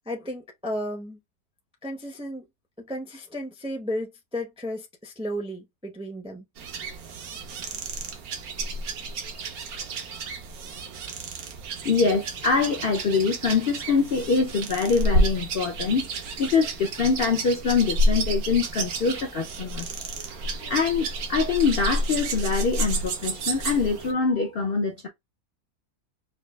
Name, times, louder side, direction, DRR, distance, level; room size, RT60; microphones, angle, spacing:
voice 1, 0.1-1.2 1.8-2.4 2.9-6.4, equal, 5° right, 0.4 m, -33 dB
sound 1, 6.6-24.1, right 1 dB, 75° right, 1.3 m, -30 dB
voice 2, 11.8-16.1 16.4-19.9 20.6-25.1, left 5 dB, 60° left, 0.6 m, -24 dB
5.2 x 2.3 x 2.2 m
omnidirectional pair, 1.6 m